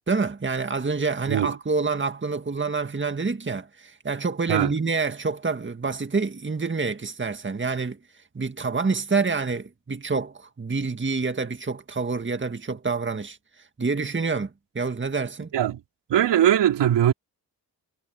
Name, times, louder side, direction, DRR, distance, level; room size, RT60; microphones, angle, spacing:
voice 1, 0.1-8.0 8.3-13.4 13.8-15.5, right 4 dB, 30° right, 1.9 m, -27 dB
voice 2, 16.1-17.1, right 11 dB, 85° right, 3.7 m, -20 dB
supercardioid pair, 50°, 41 cm